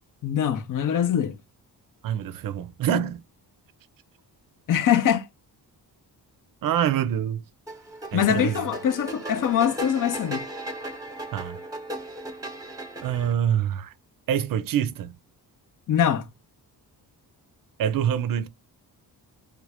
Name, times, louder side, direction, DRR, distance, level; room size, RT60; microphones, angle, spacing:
voice 1, 0.2-1.4 4.7-5.3 8.1-10.5 15.9-16.3, left 9 dB, 55° left, 0.6 m, -23 dB
voice 2, 2.0-3.2 6.6-7.4 8.1-8.7 11.3-11.6 13.0-13.9 14.3-15.1 17.8-18.5, right 9 dB, 60° right, 0.5 m, -25 dB
sound 1, 7.7-13.3, right 1 dB, 10° right, 0.9 m, -36 dB
3.2 x 2.5 x 3.3 m
wide cardioid pair, 140°, 39 cm